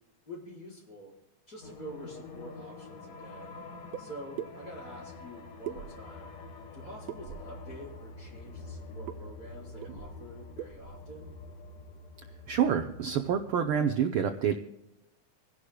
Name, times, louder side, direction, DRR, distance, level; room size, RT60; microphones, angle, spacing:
voice 1, 0.3-1.1 1.5-3.6 4.0-6.3 6.7-11.3, equal, 30° left, -5 dB, 5.2 m, -47 dB
sound 1, 1.6-13.8, left 2 dB, 50° left, 1.0 m, -46 dB
sound 2, 3.9-4.0 4.4-4.5 5.6-6.3 7.1-7.6 9.1-9.2 9.5-9.6 9.8-10.2 10.6-10.9, right 11 dB, 70° right, 1.8 m, -40 dB
voice 2, 12.5-14.6, right 8 dB, 90° right, 5 dB, 1.1 m, -27 dB
26.0 x 11.0 x 2.2 m, 0.87 s
omnidirectional pair, 3.3 m